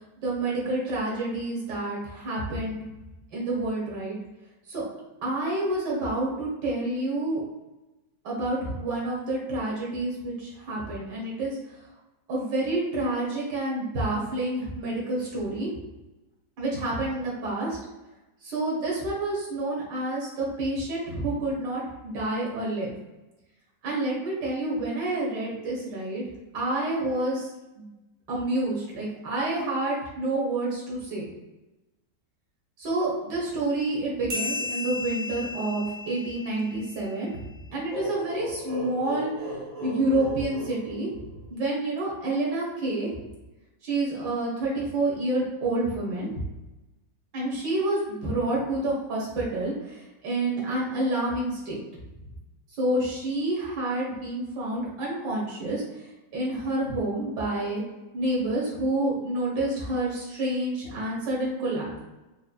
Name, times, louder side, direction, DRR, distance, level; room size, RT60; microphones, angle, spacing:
voice 1, 0.0-2.8 3.3-4.2 4.7-4.9 5.2-7.4 8.2-11.6 12.3-15.7 16.6-17.8 18.4-22.9 23.8-26.2 26.5-27.5 27.8-27.9 28.3-31.3 32.8-37.5 37.7-39.3 39.8-41.1 41.5-43.1 43.8-46.3 47.3-51.8 52.8-57.8 58.1-62.0, right 2 dB, 65° right, -4 dB, 1.8 m, -28 dB
sound 1, 34.3-37.3, left 3 dB, 85° right, 1.8 m, -35 dB
sound 2, 37.9-41.6, equal, 25° right, 0.8 m, -36 dB
5.2 x 2.5 x 2.3 m, 1.0 s
omnidirectional pair, 2.0 m